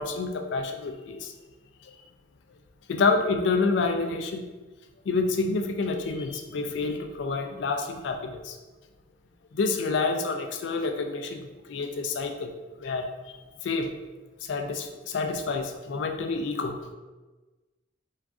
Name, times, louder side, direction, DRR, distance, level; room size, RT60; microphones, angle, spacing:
voice 1, 0.0-1.3 2.9-4.4 5.1-8.6 9.5-11.4 11.7-12.5 12.8-13.1 13.6-13.9 14.5-16.8, left 4 dB, 65° left, 5 dB, 0.3 m, -28 dB
2.4 x 2.4 x 3.4 m, 1.2 s
head